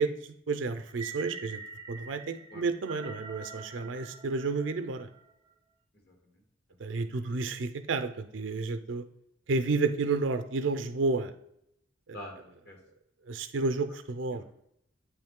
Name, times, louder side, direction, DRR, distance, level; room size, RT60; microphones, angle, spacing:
voice 1, 0.0-1.6 1.9-5.1 6.8-9.0 9.5-11.3 12.1-12.2 13.3-14.4, right 3 dB, 75° right, 9 dB, 0.5 m, -31 dB
sound 1, 0.9-5.2, right 4 dB, 25° right, 0.5 m, -45 dB
voice 2, 5.9-6.4 6.7-7.0 7.2-7.5 12.1-12.8 14.3-14.4, left 1 dB, 60° left, 1 dB, 1.5 m, -48 dB
8.4 x 3.1 x 3.6 m, 0.76 s
head